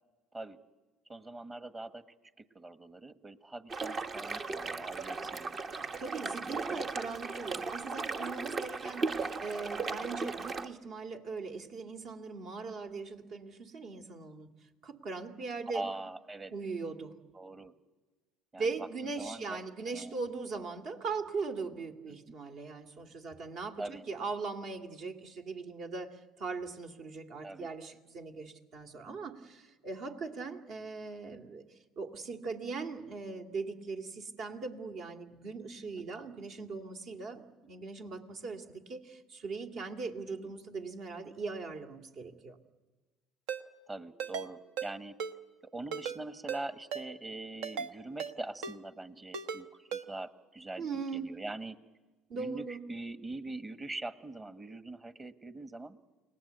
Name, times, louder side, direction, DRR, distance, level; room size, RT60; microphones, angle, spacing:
voice 1, 1.1-2.0 2.5-5.6 5.9-6.1 6.4-6.8 15.7-16.5 17.3-17.7 18.5-19.6 19.9-20.2 22.1-22.2 23.8-24.0 27.4-27.7 29.0-29.2 43.9-45.2 45.7-51.8 52.3-56.0, right 2 dB, 25° right, 11 dB, 1.5 m, -43 dB
sound 1, 3.7-10.7, right 4 dB, 40° right, 1.1 m, -37 dB
voice 2, 6.0-14.5 14.8-15.8 16.5-17.1 18.6-31.6 32.0-42.6 50.8-51.3 52.3-52.8, right 4 dB, 60° right, 6 dB, 2.4 m, -40 dB
Ringtone, 43.5-43.6 44.2-44.5 44.8-44.9 45.2-45.3 45.9-46.2 46.5-46.6 46.9-47.1 47.6-47.9 48.2-48.3 48.6-48.8 49.3-49.6 49.9-50.0, right 6 dB, 75° right, 1.0 m, -36 dB
29.5 x 19.0 x 8.2 m, 1.2 s
hypercardioid pair, 75°, 0 cm